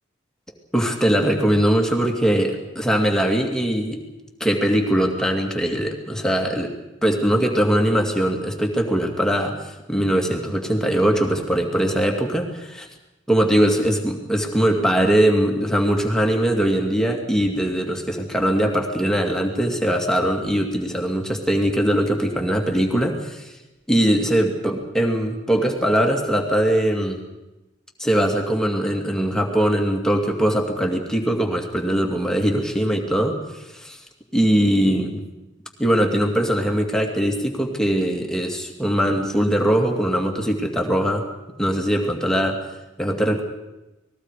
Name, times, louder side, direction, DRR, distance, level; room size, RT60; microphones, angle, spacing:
voice 1, 0.7-4.0 4.4-6.7 7.0-9.6 9.9-12.9 13.3-23.4 23.9-27.2 28.0-33.4 33.7-34.0 34.3-35.2 35.8-41.2 41.6-42.6 43.0-43.4, right 1 dB, 5° left, 1 dB, 2.6 m, -21 dB
29.5 x 20.5 x 5.0 m, 0.98 s
head